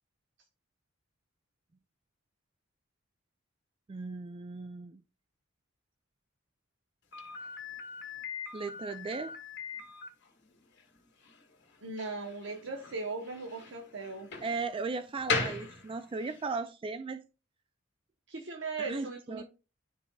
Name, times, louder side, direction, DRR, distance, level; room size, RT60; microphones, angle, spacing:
voice 1, 3.9-5.0 7.3-7.5 8.5-9.4 14.4-17.3 18.8-19.4, right 4 dB, 25° right, 0.3 m, -37 dB
Slam, 7.1-16.5, left 4 dB, 60° left, 1.9 m, -40 dB
voice 2, 11.8-14.3 18.3-19.4, right 3 dB, 65° right, 0.9 m, -38 dB
12.0 x 4.2 x 2.3 m
head